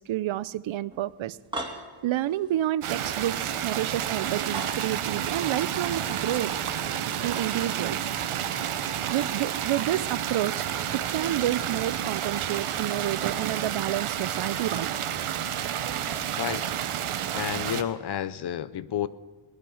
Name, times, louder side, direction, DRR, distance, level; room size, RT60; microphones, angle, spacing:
voice 1, 0.0-1.4 2.0-6.5 7.2-8.1 9.1-10.6 10.9-14.9, right 13 dB, 70° right, 19 dB, 0.6 m, -29 dB
sound 1, 0.9-8.5 8.8-16.8, right 2 dB, 10° right, 2.4 m, -46 dB
sound 2, 2.8-17.8, right 9 dB, 90° right, 1.0 m, -30 dB
voice 2, 17.3-19.1, left 10 dB, 55° left, 17 dB, 0.7 m, -30 dB
19.5 x 9.7 x 6.3 m, 1.5 s
wide cardioid pair, 110°, 49 cm